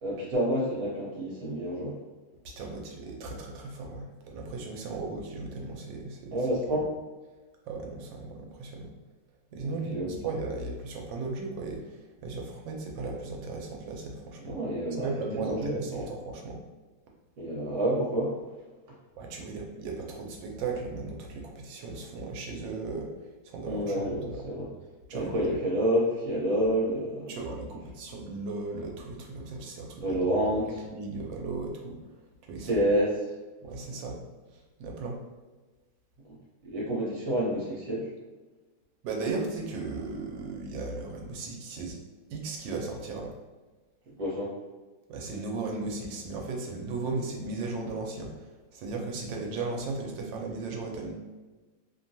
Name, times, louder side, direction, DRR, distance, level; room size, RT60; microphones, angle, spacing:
voice 1, 0.0-2.0 6.3-6.9 9.6-10.1 14.4-16.1 17.4-18.4 23.6-24.7 25.1-27.4 30.0-30.8 32.6-33.2 36.2-36.4 36.6-38.1 44.2-44.5, equal, 55° right, -5 dB, 1.3 m, -29 dB
voice 2, 2.4-6.4 7.7-8.9 9.5-14.6 15.0-16.6 19.2-24.7 25.1-25.5 27.3-30.2 30.8-32.0 32.4-32.8 33.6-34.2 34.8-35.2 39.0-42.0 42.3-43.3 45.1-51.1, right 3 dB, 90° right, 1 dB, 1.3 m, -36 dB
3.2 x 2.2 x 2.7 m, 1.2 s
omnidirectional pair, 2.0 m